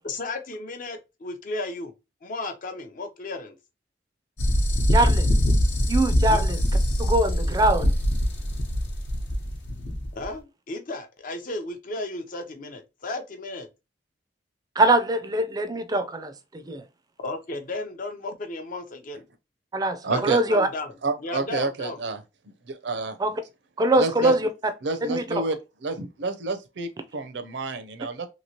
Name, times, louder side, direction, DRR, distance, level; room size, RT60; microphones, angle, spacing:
voice 1, 0.0-1.9 2.2-3.6 6.2-6.4 10.1-13.7 17.2-19.3 20.1-20.9 21.2-22.0 24.2-24.4, left 2 dB, 50° left, 0.5 m, -34 dB
sound 1, 4.4-10.2, equal, 75° left, 0.9 m, -23 dB
voice 2, 4.9-5.3 5.9-6.6 7.0-7.9 14.8-16.8 19.7-20.7 23.2-23.4 23.8-24.5 25.0-25.4, right 1 dB, 20° right, 0.4 m, -23 dB
voice 3, 20.0-20.4 21.0-22.2 22.7-23.2 24.0-24.3 24.8-25.6 25.8-28.3, right 3 dB, 70° right, 0.5 m, -29 dB
2.9 x 2.8 x 2.8 m
head